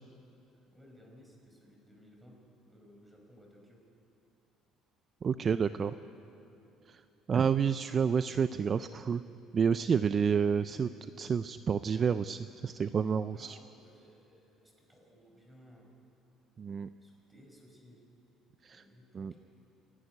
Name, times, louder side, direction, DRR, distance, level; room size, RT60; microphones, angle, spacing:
voice 1, 0.7-2.4 2.7-3.8 5.4-6.1 13.3-15.9 17.0-18.1 18.7-19.4, equal, 5° right, 0 dB, 4.9 m, -58 dB
voice 2, 5.2-5.9 6.9-7.0 7.3-9.2 9.5-10.9 11.2-13.6 16.6-16.9 18.6-18.8 19.1-19.4, right 6 dB, 35° right, 12 dB, 0.4 m, -29 dB
26.5 x 11.0 x 9.9 m, 2.8 s
cardioid pair, 125°, 0 cm